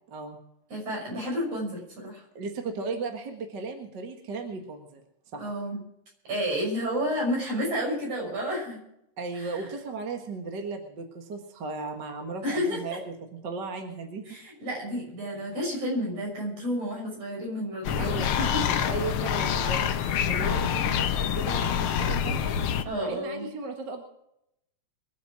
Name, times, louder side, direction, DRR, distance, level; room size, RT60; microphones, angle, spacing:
voice 1, 0.1-0.4 2.4-5.0 5.3-5.5 9.2-13.2 13.4-14.2 15.3-15.5 17.9-18.4 18.7-19.9 20.3-22.6 23.0-24.0, right 3 dB, 40° right, 4 dB, 1.9 m, -36 dB
voice 2, 0.7-2.2 5.4-5.8 6.3-8.8 9.3-9.6 12.4-13.0 14.3-18.7 22.8-23.4, equal, 60° right, -1 dB, 7.5 m, -31 dB
sound 1, 17.8-22.8, left 8 dB, 65° left, 1.4 m, -26 dB
23.0 x 8.4 x 6.1 m, 0.79 s
omnidirectional pair, 3.3 m